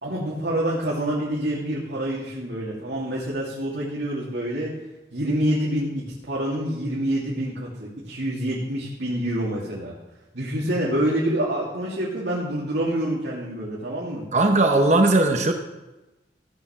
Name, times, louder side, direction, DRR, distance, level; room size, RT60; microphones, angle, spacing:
voice 1, 0.0-4.7 5.1-9.9 10.3-14.2, right 1 dB, 80° right, -6 dB, 2.6 m, -27 dB
voice 2, 14.3-15.5, right 2 dB, 40° right, 5 dB, 0.9 m, -18 dB
15.5 x 6.8 x 5.9 m, 1.0 s
head